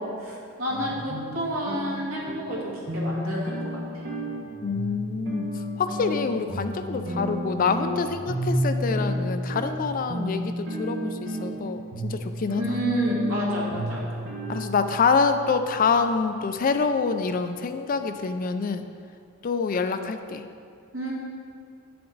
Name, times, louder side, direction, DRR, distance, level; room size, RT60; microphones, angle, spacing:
voice 1, 0.0-3.6 12.6-14.1 20.9-21.1, right 1 dB, 75° right, -5 dB, 2.1 m, -29 dB
sound 1, 0.7-16.9, equal, 55° right, 1.4 m, -32 dB
voice 2, 4.6-12.6 14.5-18.9 19.4-20.4, left 5 dB, 40° left, 9 dB, 0.4 m, -26 dB
8.9 x 6.8 x 3.9 m, 2.4 s
head